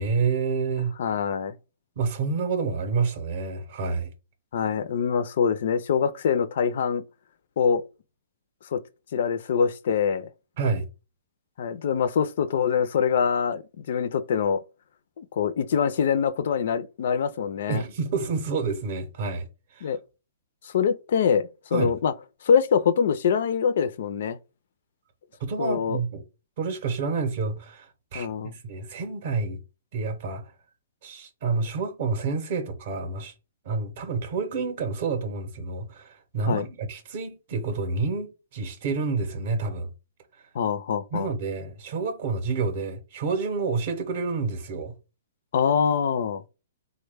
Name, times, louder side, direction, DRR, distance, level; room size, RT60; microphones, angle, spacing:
voice 1, 0.0-0.9 2.0-4.1 10.6-10.9 17.7-20.0 21.7-21.9 25.4-26.2 26.6-29.6 29.9-30.5 31.0-33.3 33.6-39.9 41.1-44.9, right 4 dB, 40° right, 0.6 m, -29 dB
voice 2, 1.0-1.5 4.5-7.0 7.6-7.8 8.7-8.8 9.1-10.3 11.6-14.6 15.2-17.8 19.8-20.0 20.6-22.1 22.4-24.4 25.6-26.0 28.1-28.5 36.5-36.7 40.5-41.3 45.5-46.4, left 7 dB, 55° left, 0.3 m, -24 dB
3.6 x 2.1 x 3.3 m
hypercardioid pair, 170°, 0 cm